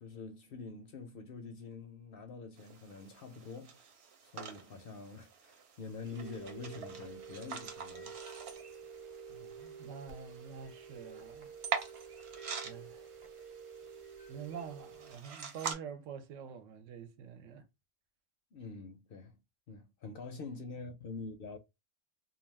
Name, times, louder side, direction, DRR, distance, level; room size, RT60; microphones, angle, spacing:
voice 1, 0.0-3.8 4.2-8.1 18.5-19.4 19.7-21.6, left 4 dB, 60° left, 0.6 m, -46 dB
sound 1, 2.6-15.7, right 6 dB, 65° right, 0.9 m, -45 dB
sound 2, 6.0-15.2, right 6 dB, 40° right, 0.4 m, -49 dB
voice 2, 9.3-11.5 12.6-13.1 14.3-17.7, right 7 dB, 85° right, 1.0 m, -47 dB
2.4 x 2.3 x 3.2 m
omnidirectional pair, 1.3 m